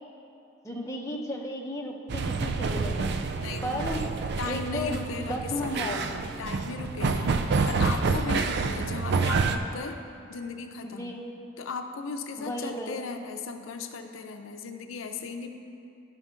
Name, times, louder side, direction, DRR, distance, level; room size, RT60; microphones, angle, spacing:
voice 1, 0.6-3.3 3.6-4.0 4.5-5.0 5.3-6.0 10.8-11.2 12.4-12.9, left 1 dB, 15° left, -1 dB, 0.7 m, -34 dB
sound 1, 2.1-9.6, right 4 dB, 60° right, 0.4 m, -28 dB
voice 2, 3.4-10.0 10.3-11.1 11.6-15.5, left 4 dB, 90° left, 6 dB, 0.5 m, -37 dB
12.5 x 5.2 x 3.7 m, 2.7 s
head